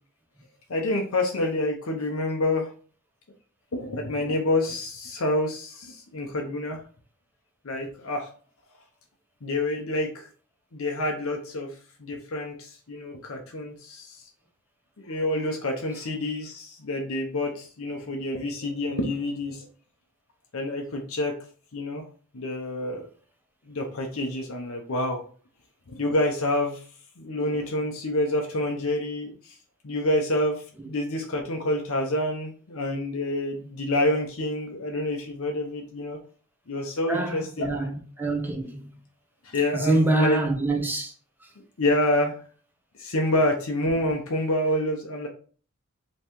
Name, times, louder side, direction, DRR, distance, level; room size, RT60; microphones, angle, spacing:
voice 1, 0.7-2.7 3.7-6.8 7.6-8.3 9.4-10.3 10.7-14.2 15.0-19.7 20.5-21.4 21.7-22.0 22.3-23.1 23.7-25.2 25.9-26.8 27.2-29.6 29.8-36.2 36.7-37.8 39.4-40.4 41.8-42.4 43.0-45.3, left 1 dB, 70° left, 0.8 m, -27 dB
voice 2, 37.1-38.9 39.8-41.1, right 2 dB, 10° right, 1.0 m, -25 dB
5.5 x 3.1 x 3.0 m
head